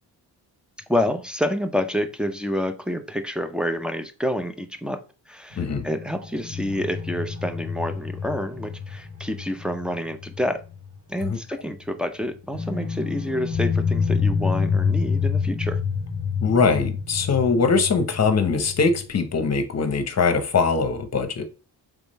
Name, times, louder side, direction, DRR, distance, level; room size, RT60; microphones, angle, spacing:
voice 1, 0.9-5.0 5.3-10.6 11.1-15.8, equal, ahead, 0.5 m, -28 dB
sound 1, 5.5-10.9 11.2-11.3 12.5-19.1, left 5 dB, 85° right, 2.2 m, -28 dB
voice 2, 16.4-21.4, left 4 dB, 40° left, 0.8 m, -22 dB
3.5 x 3.5 x 4.0 m
cardioid pair, 95°, 40 cm